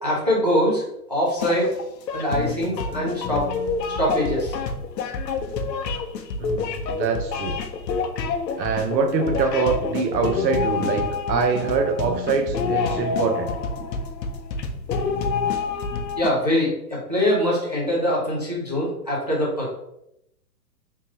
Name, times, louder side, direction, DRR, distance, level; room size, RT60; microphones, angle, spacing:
voice 1, 0.0-0.8 1.1-1.7 2.1-3.5 4.0-4.6 16.2-19.7, equal, 25° right, -5 dB, 0.4 m, -23 dB
sound 1, 1.4-16.3, left 4 dB, 75° left, 0.7 m, -27 dB
voice 2, 6.4-7.6 8.6-13.9, right 5 dB, 90° right, 6 dB, 0.9 m, -24 dB
3.6 x 2.9 x 2.8 m, 0.80 s
hypercardioid pair, 175°, 49 cm